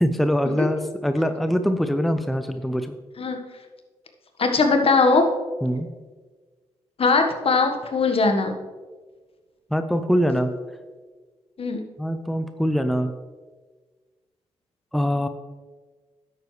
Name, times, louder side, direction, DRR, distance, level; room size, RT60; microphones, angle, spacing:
voice 1, 0.0-2.9 5.6-5.9 9.7-10.5 12.0-13.1 14.9-15.3, equal, ahead, 8 dB, 0.7 m, -23 dB
voice 2, 4.4-5.3 7.0-8.5 11.6-11.8, left 3 dB, 50° left, 4 dB, 1.5 m, -20 dB
10.5 x 8.1 x 3.3 m, 1.4 s
supercardioid pair, 50°, 12 cm